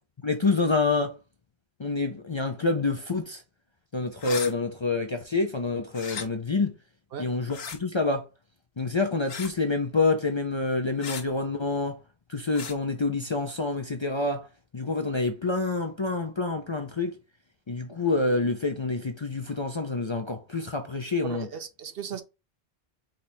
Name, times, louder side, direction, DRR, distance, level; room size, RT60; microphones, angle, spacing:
voice 1, 0.2-1.2 1.8-3.4 3.9-6.7 7.2-8.2 8.8-12.0 12.3-14.5 14.7-17.2 17.7-21.5, left 3 dB, 35° left, 0.5 m, -27 dB
sound 1, 4.2-4.5 5.9-6.3 7.5-7.8 9.3-9.6 11.0-11.2 12.5-12.8, left 6 dB, 75° left, 1.0 m, -36 dB
voice 2, 21.2-22.2, right 7 dB, 65° right, 0.9 m, -37 dB
4.9 x 2.4 x 4.2 m
omnidirectional pair, 1.1 m